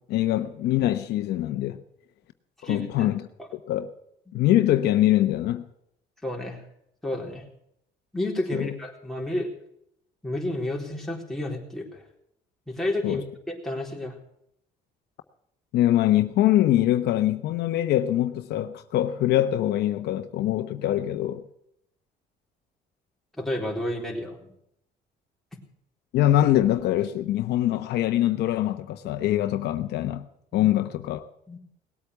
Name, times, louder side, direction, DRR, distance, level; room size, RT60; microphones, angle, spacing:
voice 1, 0.1-1.8 2.6-3.3 3.7-3.9 4.3-5.7 8.5-8.7 13.0-13.2 15.7-21.4 26.1-30.2 30.5-31.2, left 13 dB, 80° left, 1.0 m, -23 dB
voice 2, 2.6-3.1 6.2-6.6 7.0-7.4 8.1-9.5 10.2-12.0 12.7-14.2 23.4-24.5 30.5-30.7 31.5-31.6, left 1 dB, ahead, 3.9 m, -31 dB
19.0 x 8.5 x 8.1 m
cardioid pair, 110°, 17 cm